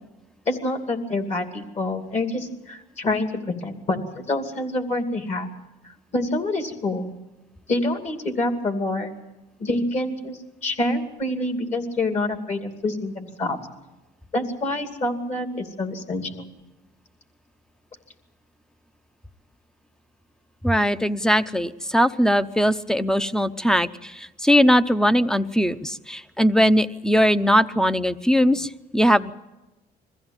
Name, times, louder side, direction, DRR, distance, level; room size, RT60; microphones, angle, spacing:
voice 1, 0.5-5.5 5.8-7.1 7.7-9.1 9.6-13.6 14.3-16.5, left 2 dB, 40° left, 7 dB, 2.7 m, -27 dB
voice 2, 20.6-29.3, equal, 5° left, 14 dB, 0.7 m, -20 dB
22.0 x 15.0 x 8.9 m, 1.0 s
cardioid pair, 110°, 17 cm